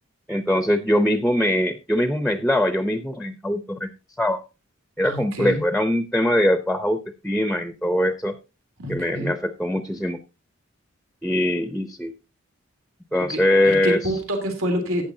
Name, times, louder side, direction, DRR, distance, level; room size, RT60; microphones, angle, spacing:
voice 1, 0.3-3.9 4.2-4.4 5.0-8.3 8.9-10.2 11.2-12.1 13.1-14.1, left 1 dB, ahead, 8 dB, 0.7 m, -22 dB
voice 2, 5.0-5.6 8.8-9.3 13.2-15.0, equal, 80° right, 3 dB, 3.1 m, -27 dB
15.0 x 9.3 x 2.7 m, 0.30 s
head